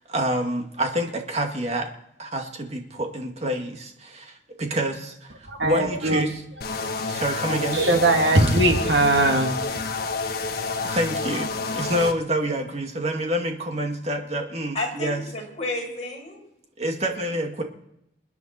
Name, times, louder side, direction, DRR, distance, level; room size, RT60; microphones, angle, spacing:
voice 1, 0.0-1.9 2.2-6.4 7.1-7.8 10.8-15.2 16.8-17.6, right 1 dB, 35° right, 3 dB, 2.1 m, -27 dB
voice 2, 5.5-6.3 7.7-9.8, right 2 dB, 75° right, 3 dB, 2.1 m, -20 dB
sound 1, 6.6-12.1, left 4 dB, 60° left, 1.5 m, -29 dB
voice 3, 14.7-16.4 17.0-17.4, left 2 dB, 40° left, -2 dB, 6.0 m, -32 dB
28.0 x 9.6 x 4.4 m, 0.81 s
head